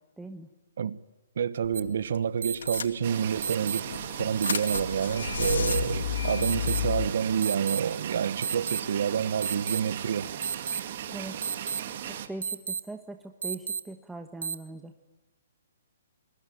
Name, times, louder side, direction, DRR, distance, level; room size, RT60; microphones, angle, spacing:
voice 1, 0.2-0.5 11.0-11.4 12.0-14.9, right 2 dB, 5° right, 1.1 m, -41 dB
voice 2, 1.4-3.9 4.2-10.3, right 7 dB, 60° right, 1.1 m, -28 dB
sound 1, 1.6-1.9 2.1-2.2 2.6-3.4 3.9-7.1, left 7 dB, 80° left, 2.1 m, -31 dB
sound 2, 1.7-1.8 2.4-2.8 3.4-3.8 4.4-4.8 5.4-5.8 6.4-6.8 7.4-7.8 8.4-8.8 9.4-9.8 10.4-10.8 11.4-11.8 12.4-12.8 13.4-13.8 14.4-14.5, right 6 dB, 80° right, 1.6 m, -31 dB
sound 3, 3.0-12.3, right 10 dB, 45° right, 2.3 m, -37 dB
23.0 x 22.0 x 9.1 m
hypercardioid pair, 160°, 0 cm